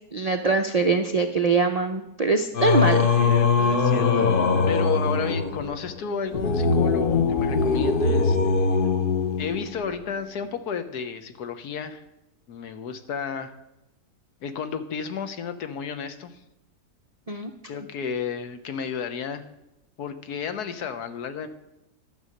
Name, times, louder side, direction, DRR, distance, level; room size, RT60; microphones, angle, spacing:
voice 1, 0.1-3.1 17.3-17.5, right 4 dB, 60° right, 5 dB, 0.4 m, -23 dB
Singing, 2.5-9.9, left 4 dB, 45° left, 0.7 m, -22 dB
voice 2, 3.2-4.3 4.7-8.4 9.4-12.0 12.5-13.5 14.4-16.4 17.7-19.4 20.0-21.5, left 6 dB, 85° left, 9 dB, 1.5 m, -32 dB
12.0 x 7.3 x 6.5 m, 0.90 s
omnidirectional pair, 1.6 m